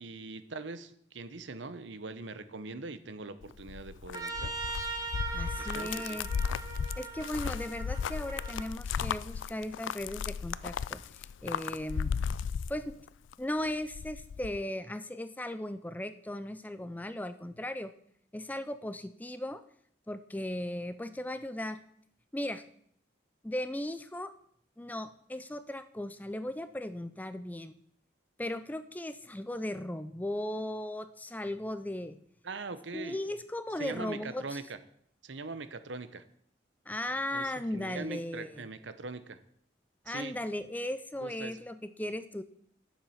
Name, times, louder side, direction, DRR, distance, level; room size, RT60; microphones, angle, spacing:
voice 1, 0.0-4.5 5.6-6.2 32.4-33.2 33.8-34.8 35.2-36.2 37.3-39.4 40.1-40.3 41.2-41.6, right 3 dB, 75° right, 12 dB, 0.8 m, -42 dB
sound 1, 3.4-13.3 13.7-14.6, left 6 dB, 80° left, 0.4 m, -35 dB
Trumpet, 4.1-8.7, right 4 dB, 20° right, 1.1 m, -40 dB
voice 2, 5.3-6.3 7.0-12.2 12.7-13.0 13.4-17.9 18.3-19.6 20.1-21.8 22.3-22.6 23.4-24.3 24.8-27.8 28.4-32.2 32.9-34.6 36.9-38.6 40.1-42.4, left 1 dB, 10° left, 12 dB, 0.4 m, -37 dB
10.5 x 7.2 x 5.7 m, 0.66 s
head